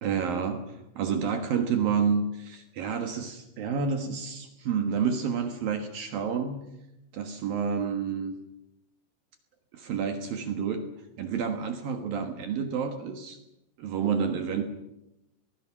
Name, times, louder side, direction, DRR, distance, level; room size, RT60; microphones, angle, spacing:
voice 1, 0.0-6.7 7.1-8.3 9.7-10.8 11.2-13.4 13.8-14.6, right 6 dB, 60° right, 6 dB, 2.6 m, -29 dB
25.5 x 20.0 x 6.1 m, 0.92 s
omnidirectional pair, 5.5 m